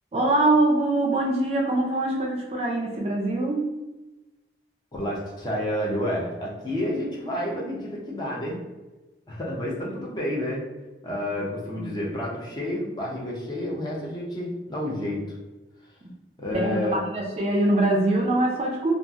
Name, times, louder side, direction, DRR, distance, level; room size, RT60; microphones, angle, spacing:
voice 1, 0.1-3.7 11.7-12.0 16.5-18.9, right 2 dB, 35° right, -1 dB, 0.3 m, -23 dB
voice 2, 4.9-8.6 9.3-10.7 11.0-15.4 15.8-15.9 16.4-17.0, left 1 dB, 25° left, -3 dB, 0.5 m, -30 dB
2.7 x 2.3 x 2.3 m, 1.1 s
head